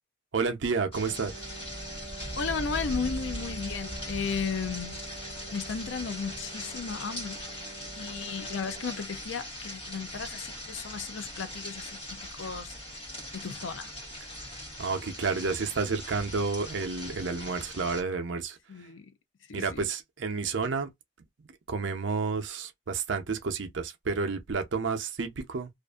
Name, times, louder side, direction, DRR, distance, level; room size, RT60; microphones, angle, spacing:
voice 1, 0.3-1.5 14.8-18.6 19.5-20.9 21.7-25.7, right 4 dB, 70° right, 0.6 m, -30 dB
sound 1, 0.9-18.0, equal, 25° left, 1.3 m, -40 dB
Wind instrument woodwind instrument, 1.0-9.1, right 4 dB, 5° right, 1.3 m, -47 dB
voice 2, 2.4-5.0 5.5-7.4 8.0-12.8 13.3-13.9 18.7-19.1 19.5-19.9, left 5 dB, 75° left, 0.5 m, -35 dB
2.5 x 2.5 x 2.3 m
head